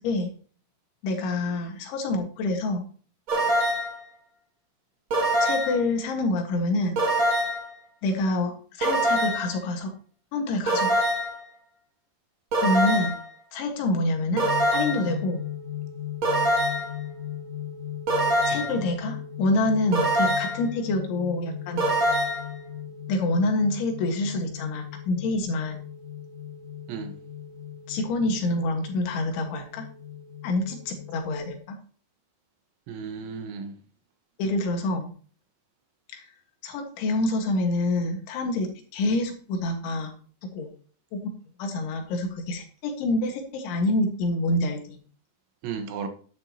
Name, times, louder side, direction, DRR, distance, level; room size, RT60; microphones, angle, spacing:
voice 1, 1.0-2.8 5.4-7.0 8.0-9.9 10.3-11.0 12.6-13.2 13.5-14.5 14.7-15.4 18.5-21.8 23.1-25.8 27.9-29.9 30.4-31.8 34.4-35.1 36.1-36.3 36.6-40.2 40.6-40.7 41.1-41.2 41.6-45.0, left 2 dB, 85° left, 4.1 m, -27 dB
sound 1, 3.3-4.0 5.1-5.8 7.0-7.7 8.8-9.5 10.7-11.4 12.5-13.2 14.4-15.1 16.2-17.0 18.1-18.8 19.9-20.7 21.8-22.5, right 1 dB, 35° right, 2.4 m, -24 dB
sound 2, 14.3-31.5, left 10 dB, 60° left, 1.4 m, -38 dB
voice 2, 18.5-18.8 26.9-27.1 32.9-33.7 45.6-46.1, right 6 dB, 85° right, 3.8 m, -35 dB
11.0 x 10.5 x 2.9 m
omnidirectional pair, 5.2 m